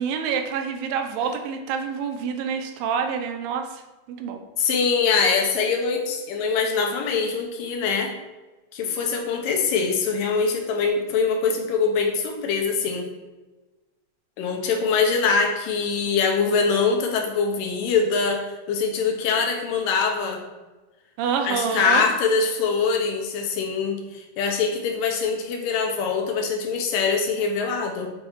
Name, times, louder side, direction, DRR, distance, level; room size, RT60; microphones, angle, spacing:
voice 1, 0.0-3.8 4.2-4.4 21.2-22.0, right 6 dB, 85° right, 5 dB, 2.5 m, -27 dB
voice 2, 4.6-8.1 8.7-13.1 14.4-20.4 21.4-28.1, left 5 dB, 80° left, 2 dB, 2.6 m, -23 dB
7.6 x 4.1 x 4.5 m, 1.2 s
omnidirectional pair, 4.0 m